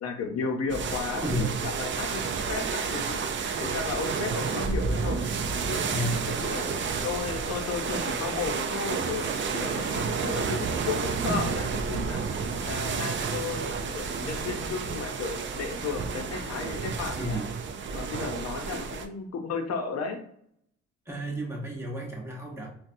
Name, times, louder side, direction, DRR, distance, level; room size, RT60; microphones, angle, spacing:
voice 1, 0.0-3.2 3.6-5.2 5.7-6.7 7.0-9.3 9.5-12.2 12.6-17.4 17.9-20.2, left 5 dB, 55° left, 4 dB, 0.7 m, -34 dB
sound 1, 0.7-19.1, right 5 dB, 40° right, 0.4 m, -30 dB
voice 2, 1.2-1.6 5.9-6.3 9.2-9.3 11.2-11.6 17.2-17.6 21.1-22.7, right 1 dB, 10° right, -3 dB, 1.0 m, -32 dB
3.9 x 2.2 x 2.6 m, 0.68 s
cardioid pair, 90°, 30 cm